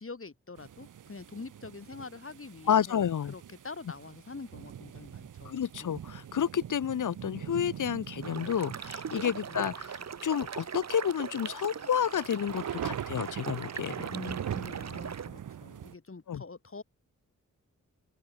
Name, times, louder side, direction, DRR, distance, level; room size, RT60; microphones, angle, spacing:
voice 1, 0.0-6.0 9.5-9.7 14.1-16.8, left 4 dB, 45° left, 7.1 m, -45 dB
sound 1, 0.6-15.9, right 9 dB, 80° right, 0.9 m, -42 dB
voice 2, 2.7-3.3 5.4-9.9 10.2-14.1 16.3-16.4, left 8 dB, 75° left, 1.2 m, -30 dB
sound 2, 8.2-15.3, right 7 dB, 55° right, 1.3 m, -40 dB
open air
cardioid pair, 60°, 31 cm